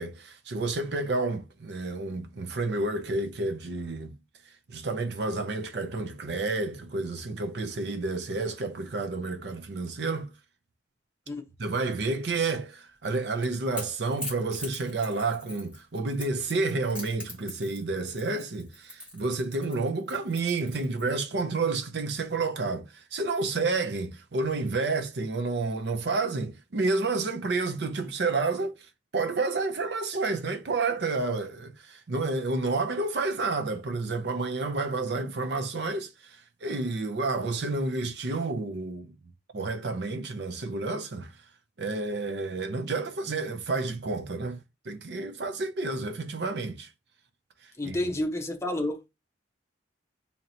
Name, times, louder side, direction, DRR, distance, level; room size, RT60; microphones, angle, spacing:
voice 1, 0.0-4.1 4.7-10.3 11.6-28.9 29.1-39.1 39.5-41.3 41.8-44.6 44.9-46.9 47.8-48.0, right 3 dB, 60° right, 0.6 m, -30 dB
Crackle / Crack, 13.0-21.2, left 1 dB, 5° right, 1.2 m, -42 dB
voice 2, 47.8-49.1, left 1 dB, 15° left, 0.6 m, -30 dB
2.8 x 2.8 x 4.2 m
head